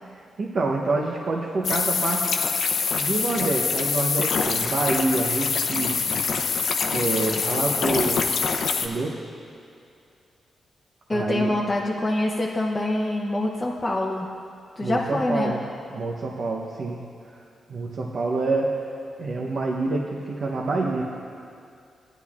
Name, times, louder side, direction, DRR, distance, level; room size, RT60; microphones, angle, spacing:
voice 1, 0.1-2.3 3.0-6.2 6.9-8.3 8.8-9.2 11.1-11.5 14.8-15.6 15.9-17.0 17.7-18.8 19.2-21.0, right 3 dB, 55° right, -1 dB, 0.7 m, -27 dB
sound 1, 1.6-8.9, left 5 dB, 70° left, 0.6 m, -25 dB
voice 2, 11.1-14.3 14.8-15.5, left 1 dB, 20° left, -2 dB, 0.7 m, -25 dB
16.0 x 10.0 x 2.4 m, 2.4 s
wide cardioid pair, 120°, 0 cm